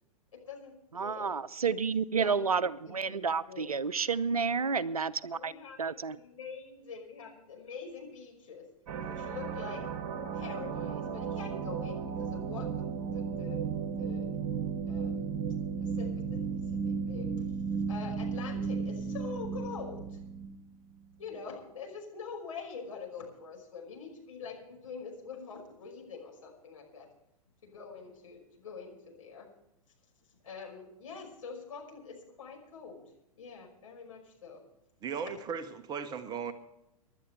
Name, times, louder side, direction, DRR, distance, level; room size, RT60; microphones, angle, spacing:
voice 1, 0.3-1.4 2.2-2.4 2.9-3.8 5.3-8.7 9.1-9.8 10.3-13.6 14.0-14.3 14.9-15.2 15.8-16.4 16.9-17.3 17.9-20.2 21.2-27.1 27.6-29.5 30.4-33.0 33.4-34.6, left 5 dB, 65° left, 0 dB, 5.7 m, -45 dB
voice 2, 0.9-5.5 5.8-6.2, right 5 dB, 75° right, 16 dB, 0.7 m, -30 dB
sound 1, 8.9-20.6, right 6 dB, 40° right, 2.0 m, -34 dB
voice 3, 35.0-36.5, right 6 dB, 20° right, 10 dB, 1.0 m, -37 dB
26.0 x 11.5 x 3.3 m, 0.83 s
figure-of-eight pair, 105°, 19 cm